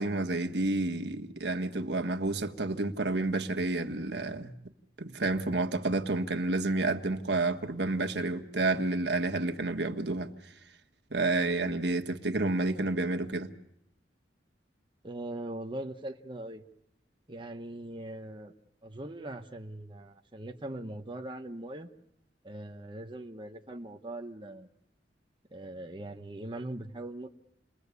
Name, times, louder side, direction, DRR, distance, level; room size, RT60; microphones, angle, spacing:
voice 1, 0.0-4.5 5.0-10.3 11.1-13.5, right 2 dB, 70° right, 1.5 m, -30 dB
voice 2, 15.0-16.6 17.3-18.5 18.8-21.9 22.4-24.7 25.5-27.3, right 1 dB, 30° right, 1.2 m, -41 dB
29.5 x 22.0 x 8.4 m
head